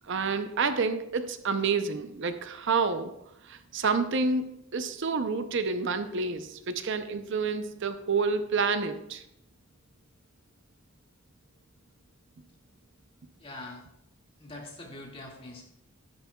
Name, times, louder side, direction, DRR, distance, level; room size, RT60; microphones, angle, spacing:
voice 1, 0.1-3.1 3.4-4.4 4.7-9.2, right 4 dB, 65° right, 10 dB, 0.6 m, -28 dB
voice 2, 13.4-13.8 14.4-15.6, left 2 dB, 25° left, -1 dB, 2.0 m, -43 dB
12.0 x 10.5 x 2.3 m, 0.82 s
head